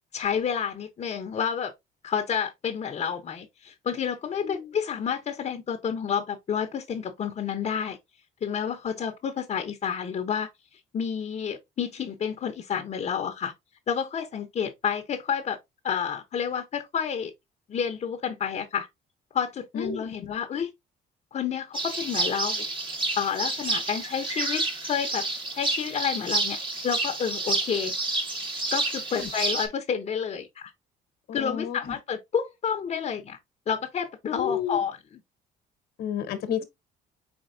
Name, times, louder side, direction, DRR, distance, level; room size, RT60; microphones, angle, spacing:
voice 1, 0.1-1.7 2.0-8.0 8.4-10.5 10.9-13.5 13.9-15.6 15.8-17.3 17.7-18.9 19.3-20.7 21.3-22.6 23.1-25.2 25.5-26.6 26.8-27.9 28.7-30.7 31.3-33.4 33.7-35.0, left 7 dB, 40° left, 0.9 m, -29 dB
voice 2, 19.7-20.1 29.1-29.3 31.3-31.9 34.3-34.8 36.0-36.6, left 8 dB, 70° left, 1.1 m, -31 dB
sound 1, 21.7-29.7, right 2 dB, 30° right, 1.6 m, -29 dB
4.5 x 4.4 x 2.7 m
cardioid pair, 110°, 17 cm